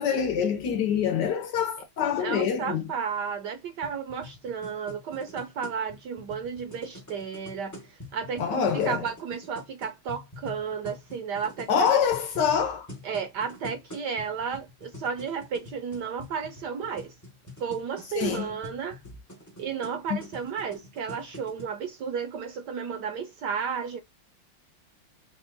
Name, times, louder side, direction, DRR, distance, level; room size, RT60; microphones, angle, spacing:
voice 1, 0.0-2.8 8.4-9.0 11.7-12.9 18.1-18.5 20.1-20.3, left 7 dB, 65° left, 1.2 m, -25 dB
voice 2, 2.2-12.0 13.0-17.1 17.6-19.0 19.6-24.0, right 6 dB, 70° right, 1.1 m, -33 dB
sound 1, 3.8-21.6, left 2 dB, 25° left, 0.3 m, -46 dB
4.3 x 2.2 x 3.5 m
omnidirectional pair, 2.3 m